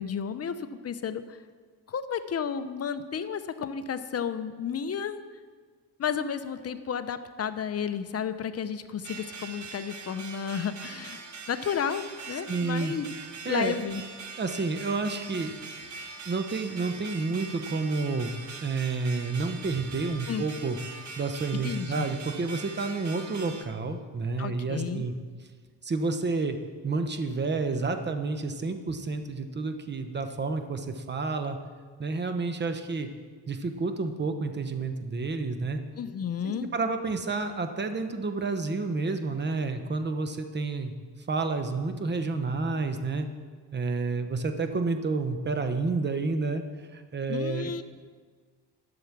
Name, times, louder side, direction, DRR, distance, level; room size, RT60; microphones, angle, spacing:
voice 1, 0.0-1.4 1.9-5.2 6.0-11.2 11.5-13.1 13.4-14.0 20.3-20.5 21.5-22.1 24.4-25.0 36.0-36.7 47.3-47.8, left 7 dB, 40° left, 11 dB, 0.7 m, -32 dB
sound 1, 9.0-23.6, right 4 dB, 45° right, 1.3 m, -42 dB
voice 2, 12.5-12.9 13.4-13.7 14.4-15.6 16.3-20.8 21.2-25.1 25.8-26.6 26.8-31.6 32.0-33.1 33.5-35.8 36.4-40.9 41.3-43.3 43.7-47.7, right 3 dB, 25° right, 8 dB, 1.0 m, -30 dB
12.0 x 7.0 x 6.1 m, 1.5 s
cardioid pair, 100°, 39 cm